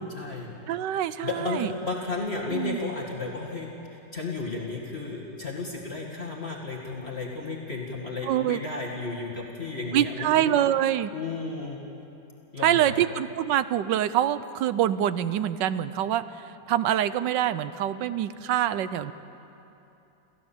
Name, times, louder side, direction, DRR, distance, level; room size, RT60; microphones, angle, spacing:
voice 1, 0.0-0.5 1.2-10.5 11.1-11.8 12.5-13.0, left 3 dB, 35° left, -2 dB, 2.2 m, -33 dB
voice 2, 0.7-1.7 2.5-2.8 8.2-8.6 9.9-11.1 12.6-19.1, right 11 dB, 75° right, 14 dB, 1.3 m, -25 dB
28.0 x 15.0 x 7.3 m, 2.9 s
omnidirectional pair, 2.0 m